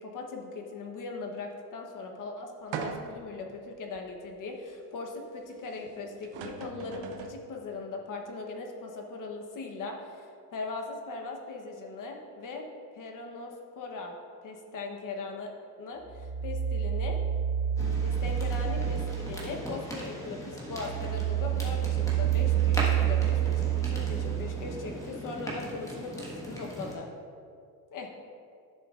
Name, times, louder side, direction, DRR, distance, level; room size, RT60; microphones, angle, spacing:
voice 1, 0.0-12.7 12.9-14.1 14.4-15.5 15.8-17.2 17.8-27.1 27.9-28.1, left 3 dB, 45° left, 2 dB, 1.0 m, -39 dB
sound 1, 2.7-3.3 4.0-4.1 5.9-6.0 6.2-7.4, right 6 dB, 80° right, 0.8 m, -38 dB
sound 2, 16.1-20.0 20.4-24.9, right 11 dB, 30° right, 0.8 m, -28 dB
sound 3, 17.8-26.9, equal, 5° left, 1.4 m, -39 dB
12.0 x 6.8 x 2.4 m, 2.4 s
cardioid pair, 145°, 43 cm